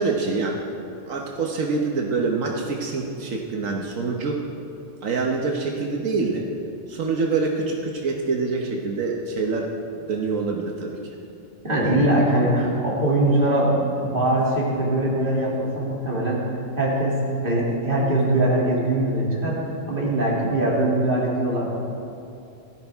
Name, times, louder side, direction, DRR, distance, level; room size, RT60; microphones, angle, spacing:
voice 1, 0.0-4.4 5.0-6.4 6.9-9.7 10.1-11.0 20.3-20.5, right 4 dB, 85° right, 0 dB, 1.4 m, -26 dB
voice 2, 11.6-16.4 16.8-17.2 17.4-19.6 19.9-21.7, right 1 dB, 40° right, -5 dB, 2.9 m, -22 dB
16.0 x 14.5 x 3.5 m, 2.7 s
omnidirectional pair, 1.3 m